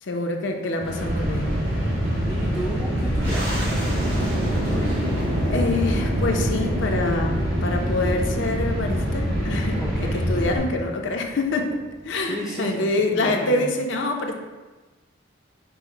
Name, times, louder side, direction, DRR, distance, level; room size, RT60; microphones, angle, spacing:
voice 1, 0.0-1.5 4.2-4.3 5.5-9.8 10.1-11.8 12.0-14.3, left 2 dB, 75° left, 3 dB, 0.5 m, -26 dB
sound 1, 0.8-10.6, equal, 80° right, 1.3 m, -25 dB
voice 2, 1.6-3.6 4.3-5.0 9.8-10.2 12.2-12.7 13.1-13.7, equal, ahead, -6 dB, 0.4 m, -34 dB
sound 2, 3.0-12.2, equal, 55° right, 1.3 m, -31 dB
5.4 x 2.0 x 4.5 m, 1.2 s
head